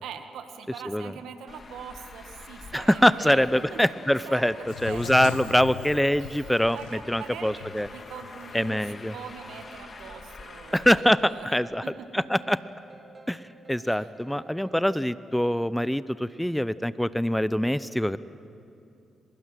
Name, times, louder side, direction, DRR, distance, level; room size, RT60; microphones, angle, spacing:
voice 1, 0.0-3.8 4.3-5.6 6.2-11.6 11.8-12.2 13.8-14.1, right 7 dB, 75° right, 7 dB, 1.8 m, -43 dB
Traffic noise roadway noise, 1.5-11.0, left 4 dB, 45° left, 2.0 m, -46 dB
voice 2, 2.7-4.5 4.8-6.8 7.1-7.9 8.5-9.1 10.7-11.8 12.1-12.6 13.3-13.4 13.7-18.2, equal, 5° left, 16 dB, 0.7 m, -24 dB
sound 1, 4.7-9.6, left 12 dB, 85° left, 0.7 m, -41 dB
sound 2, 6.1-14.9, right 2 dB, 35° right, 2.4 m, -54 dB
23.5 x 21.0 x 9.1 m, 2.6 s
hypercardioid pair, 40°, 0 cm